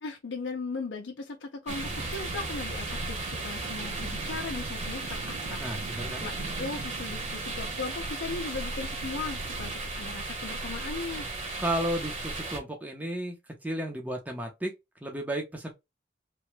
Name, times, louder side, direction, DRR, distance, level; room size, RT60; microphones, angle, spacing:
voice 1, 0.0-5.6 6.2-11.3, left 4 dB, 90° left, 0.5 m, -38 dB
sound 1, 1.7-12.6, right 2 dB, 40° right, 1.0 m, -35 dB
sound 2, 1.7-9.7, right 4 dB, 65° right, 0.4 m, -43 dB
sound 3, 1.9-8.9, left 1 dB, 30° left, 0.9 m, -48 dB
voice 2, 5.6-6.2 11.6-13.4 13.6-14.7 15.0-15.7, right 1 dB, 10° right, 0.7 m, -33 dB
3.0 x 2.2 x 3.1 m
head